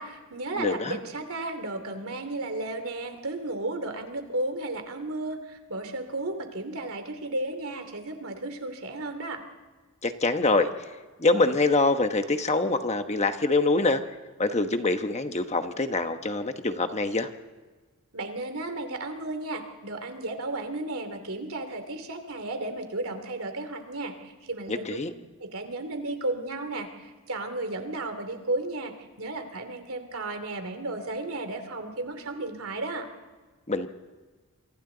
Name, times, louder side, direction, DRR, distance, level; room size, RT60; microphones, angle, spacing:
voice 1, 0.0-9.4 18.1-25.0 25.4-33.1, right 2 dB, 70° right, 7 dB, 2.9 m, -34 dB
voice 2, 0.6-1.0 10.0-10.7 11.2-14.0 14.4-17.3 24.7-25.1 33.7-33.9, left 3 dB, 30° left, 7 dB, 1.1 m, -25 dB
28.0 x 24.5 x 4.0 m, 1.3 s
head